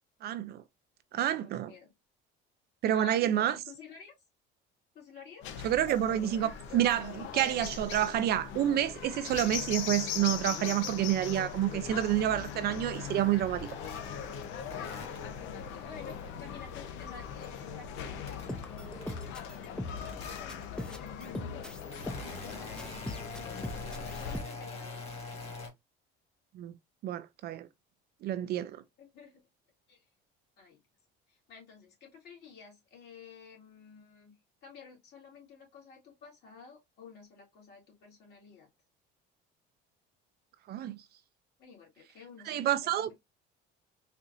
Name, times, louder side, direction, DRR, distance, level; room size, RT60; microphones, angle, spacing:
voice 1, 0.2-0.6 1.1-1.7 2.8-3.6 5.6-13.7 26.5-26.7 27.0-27.7 28.2-28.8 40.7-41.0 42.5-43.1, right 12 dB, 50° right, 0.4 m, -29 dB
voice 2, 1.1-1.9 2.9-4.1 4.9-5.5 15.8-23.6 23.8-25.1 29.0-29.4 29.9-30.0 30.6-30.8 31.3-34.3 34.6-38.7 41.6-43.1, left 5 dB, 55° left, 2.2 m, -52 dB
sound 1, 5.4-24.4, left 8 dB, 70° left, 0.7 m, -40 dB
sound 2, 13.0-17.1 17.5-19.6 19.9-20.7 21.4-25.7, left 3 dB, 30° left, 1.7 m, -46 dB
sound 3, 18.4-22.5 22.8-24.4, left 1 dB, 5° left, 0.5 m, -41 dB
4.3 x 2.5 x 2.5 m
cardioid pair, 120°, 21 cm